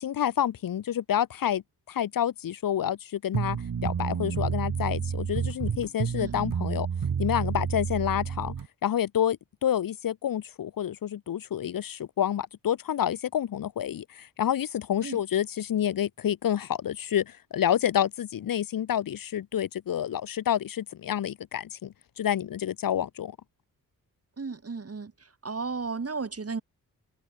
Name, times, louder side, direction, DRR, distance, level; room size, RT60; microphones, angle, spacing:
voice 1, 0.0-6.9 7.2-8.5 8.8-23.4, left 10 dB, 65° left, 0.9 m, -28 dB
sound 1, 3.3-8.7, right 7 dB, 60° right, 3.4 m, -30 dB
voice 2, 24.4-25.1 25.4-26.6, right 4 dB, 40° right, 6.1 m, -33 dB
cardioid pair, 65°, 36 cm